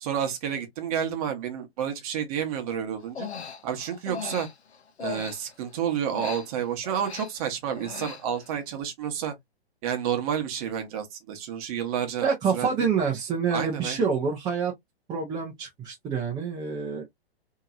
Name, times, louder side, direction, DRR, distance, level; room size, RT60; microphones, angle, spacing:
voice 1, 0.0-3.3 3.6-4.5 5.0-9.3 9.8-12.8 13.5-14.0, right 8 dB, 35° right, 0.9 m, -30 dB
Human voice, 3.0-5.7 6.1-8.6, left 7 dB, 80° left, 0.7 m, -39 dB
voice 2, 12.2-14.7 15.1-17.0, right 5 dB, 15° right, 0.6 m, -27 dB
2.8 x 2.8 x 2.3 m
figure-of-eight pair, 125°, 32 cm